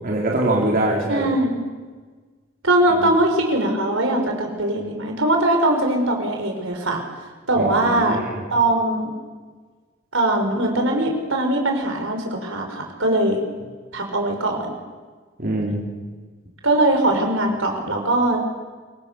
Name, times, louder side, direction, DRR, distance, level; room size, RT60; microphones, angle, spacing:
voice 1, 0.0-1.3 7.5-8.4 15.4-15.8, right 1 dB, 45° right, -3 dB, 4.1 m, -23 dB
voice 2, 1.1-1.6 2.6-7.0 7.5-8.2 8.5-9.1 10.1-13.4 13.9-14.8 16.6-18.4, right 1 dB, 65° right, 3 dB, 5.5 m, -21 dB
27.0 x 24.5 x 7.0 m, 1.4 s
head